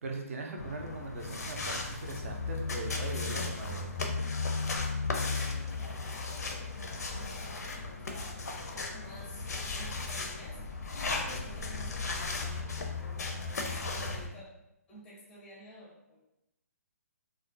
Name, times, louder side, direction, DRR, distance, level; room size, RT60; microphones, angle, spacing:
voice 1, 0.0-3.8 11.2-11.5, right 3 dB, 55° right, 2 dB, 0.5 m, -40 dB
sound 1, 0.6-14.3, left 3 dB, 80° left, 0.5 m, -35 dB
voice 2, 5.3-14.5 14.9-16.2, left 1 dB, 10° left, -6 dB, 0.5 m, -52 dB
2.3 x 2.2 x 2.5 m, 0.87 s
hypercardioid pair, 160°, 9 cm